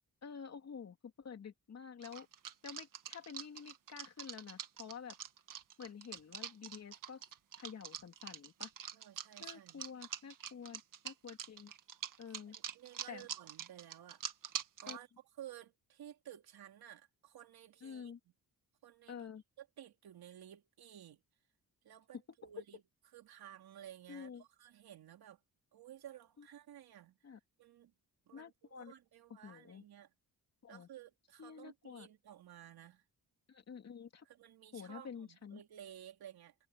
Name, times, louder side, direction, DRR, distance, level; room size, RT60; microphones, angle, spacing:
voice 1, 0.2-2.3 2.6-5.2 5.8-7.3 7.6-8.7 9.4-11.7 12.2-12.6 13.1-13.3 14.9-15.0 17.8-18.2 19.1-19.4 24.1-24.4 26.4-26.5 27.2-27.4 28.3-28.9 29.4-29.8 30.6-30.9 31.4-32.1 33.5-34.2 34.7-35.6, left 7 dB, 45° left, 3.0 m, -49 dB
sound 1, 2.0-15.0, right 9 dB, 60° right, 1.7 m, -45 dB
voice 2, 8.9-9.9 12.3-14.2 14.8-15.1 15.4-18.1 18.8-19.3 19.6-21.2 21.8-22.8 23.1-25.4 25.7-27.2 27.6-27.9 28.3-30.1 30.7-33.0 34.2-36.5, right 11 dB, 85° right, 3.1 m, -54 dB
wide cardioid pair, 155°, 36 cm